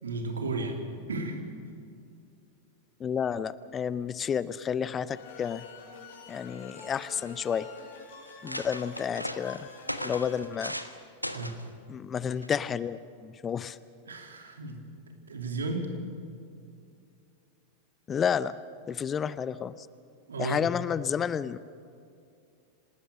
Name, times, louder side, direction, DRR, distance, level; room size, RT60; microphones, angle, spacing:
voice 1, 0.0-0.8 1.1-1.4 11.3-11.6 14.1-14.8 15.3-15.9 20.3-20.7 20.9-21.0, right 3 dB, 70° right, 3 dB, 3.2 m, -33 dB
voice 2, 3.0-5.6 6.3-7.7 8.4-9.6 10.0-10.7 11.9-13.8 18.1-18.5 18.9-19.7 20.4-21.6, left 7 dB, 25° left, 17 dB, 0.6 m, -30 dB
sound 1, 5.1-10.4, left 5 dB, 55° left, 5.9 m, -47 dB
sound 2, 6.7-7.3 7.9-8.0 8.2-10.9 11.2-11.6 12.4-12.7, equal, 90° left, 1.2 m, -38 dB
27.0 x 19.5 x 6.5 m, 2.5 s
figure-of-eight pair, 90°, 0 cm